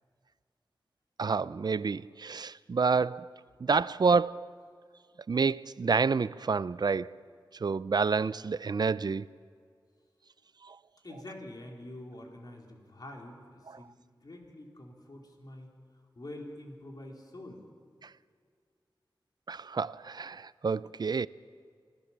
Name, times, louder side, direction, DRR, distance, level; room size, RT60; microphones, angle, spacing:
voice 1, 1.2-3.3 3.6-4.5 5.3-7.1 7.6-9.2 10.7-10.8 19.5-21.3, right 5 dB, 55° right, 0.4 m, -28 dB
voice 2, 11.0-13.9 14.2-15.7 16.2-17.6, left 1 dB, 50° left, 4.0 m, -46 dB
26.0 x 17.0 x 7.3 m
wide cardioid pair, 80°, 9 cm